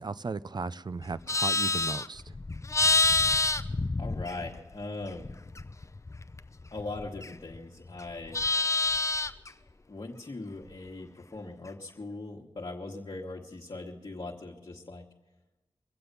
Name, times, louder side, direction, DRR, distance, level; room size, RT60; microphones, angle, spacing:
voice 1, 0.0-2.3, right 4 dB, 45° right, 16 dB, 0.5 m, -36 dB
Livestock farm animals working animals, 1.0-4.7 5.0-7.6 7.9-9.5, left 3 dB, 30° left, 0.6 m, -28 dB
voice 2, 4.0-5.3 6.7-8.4 9.9-15.1, left 2 dB, 50° left, -3 dB, 1.5 m, -40 dB
23.0 x 7.8 x 6.8 m, 1.1 s
cardioid pair, 55°, 10 cm